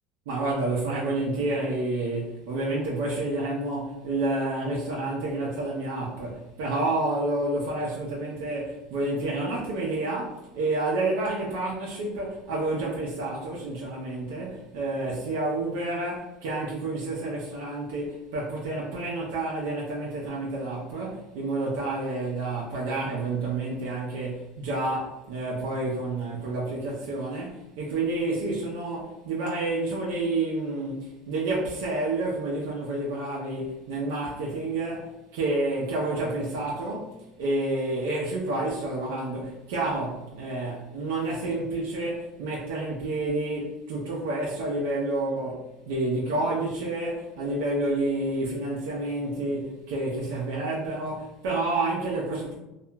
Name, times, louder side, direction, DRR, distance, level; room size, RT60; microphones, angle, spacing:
voice 1, 0.3-45.6 45.9-52.5, right 2 dB, 90° right, 0.5 m, -29 dB
2.8 x 2.3 x 2.2 m
cardioid pair, 155°, 0 cm